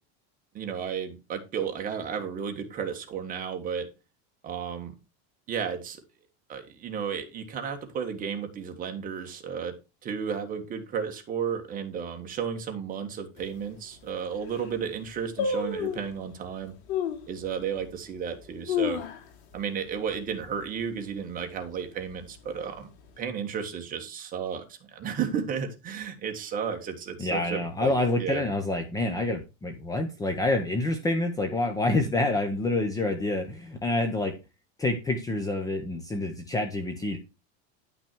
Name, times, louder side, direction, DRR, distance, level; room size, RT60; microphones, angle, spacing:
voice 1, 0.5-3.9 4.4-4.9 5.5-6.0 6.5-9.7 10.0-16.8 17.3-19.0 19.5-22.9 23.2-27.9 28.2-28.4, right 7 dB, 25° right, 5 dB, 1.7 m, -33 dB
sound 1, 13.4-13.5 14.1-14.2 14.4-14.8 15.4-16.1 16.9-17.3 17.8-17.9 18.4-19.6 19.9-20.0 20.3-20.7 21.1-21.4 22.1-22.8 23.1-23.2, left 6 dB, 80° left, 3.1 m, -30 dB
voice 2, 27.2-34.3 34.8-37.2, left 2 dB, 10° left, 6 dB, 0.9 m, -27 dB
10.5 x 5.9 x 4.6 m, 0.27 s
supercardioid pair, 165°, 33 cm